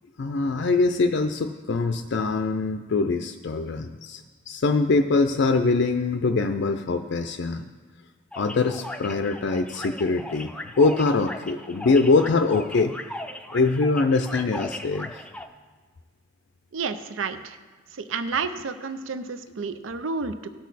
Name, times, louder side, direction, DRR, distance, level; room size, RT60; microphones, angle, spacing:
voice 1, 0.2-7.7 8.4-10.5 10.8-12.9 13.5-15.2, left 3 dB, 65° left, 7 dB, 0.4 m, -23 dB
sound 1, 8.3-15.5, left 1 dB, 5° left, 0.5 m, -38 dB
voice 2, 16.7-17.6 17.9-20.5, right 4 dB, 85° right, 11 dB, 0.6 m, -30 dB
17.0 x 6.3 x 4.1 m, 1.4 s
head